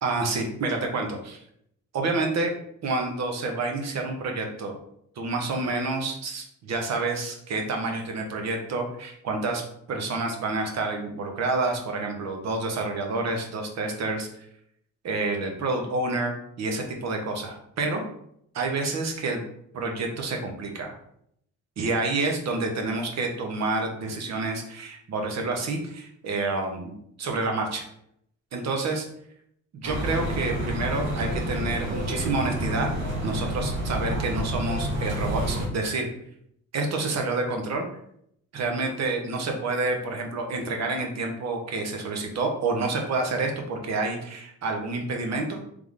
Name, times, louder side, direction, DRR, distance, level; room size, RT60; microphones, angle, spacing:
voice 1, 0.0-1.4 1.9-2.5 2.8-4.7 5.2-9.6 9.9-14.3 15.0-18.0 18.5-19.4 19.7-20.9 21.8-27.8 28.5-29.1 29.7-32.9 33.2-36.1 36.7-37.9 38.5-45.6, right 3 dB, 60° right, 3 dB, 1.1 m, -28 dB
sound 1, 29.8-35.7, right 1 dB, 80° right, 1.4 m, -29 dB
3.4 x 3.4 x 3.6 m, 0.71 s
cardioid pair, 90°, 30 cm